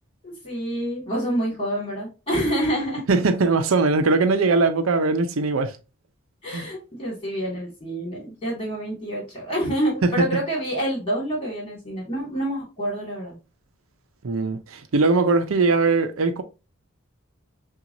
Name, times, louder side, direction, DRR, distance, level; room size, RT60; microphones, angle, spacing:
voice 1, 0.2-3.0 6.4-13.4, right 1 dB, 25° left, 2.2 m, -27 dB
voice 2, 3.1-5.7 6.5-6.6 10.0-10.3 14.2-16.4, right 3 dB, 75° right, 0.6 m, -20 dB
5.8 x 2.4 x 2.6 m
head